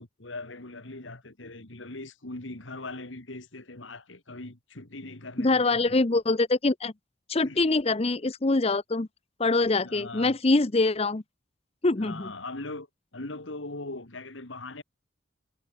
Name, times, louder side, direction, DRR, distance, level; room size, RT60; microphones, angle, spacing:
voice 1, 0.0-6.0 7.4-7.7 9.8-10.3 12.0-12.9 13.1-14.8, left 2 dB, 85° left, 2.6 m, -40 dB
voice 2, 5.4-6.9 7.3-9.1 9.4-11.2 11.8-12.3, left 3 dB, 30° left, 0.8 m, -24 dB
head